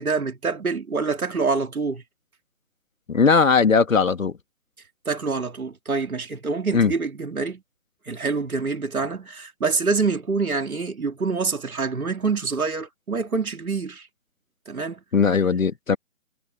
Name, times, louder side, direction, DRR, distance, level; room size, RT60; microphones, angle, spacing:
voice 1, 0.0-2.0 5.0-7.6 8.1-14.1 14.7-15.0, right 4 dB, 80° right, 3.3 m, -26 dB
voice 2, 3.1-4.3 6.7-6.9 15.1-16.0, left 5 dB, 65° left, 2.3 m, -18 dB
hypercardioid pair, 175°, 43 cm